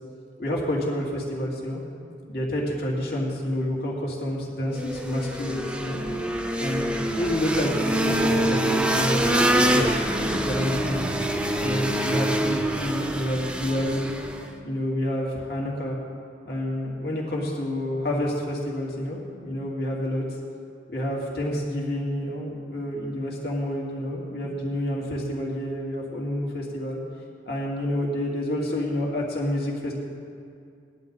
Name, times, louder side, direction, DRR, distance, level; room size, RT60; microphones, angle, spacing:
voice 1, 0.4-1.8 2.3-6.0 6.6-11.1 11.6-14.1 14.6-16.0 16.4-20.2 20.9-27.0 27.4-29.9, left 1 dB, 60° left, -3 dB, 2.9 m, -28 dB
sound 1, 4.7-14.5, right 1 dB, 5° right, 0.7 m, -25 dB
19.0 x 11.5 x 4.1 m, 2.4 s
head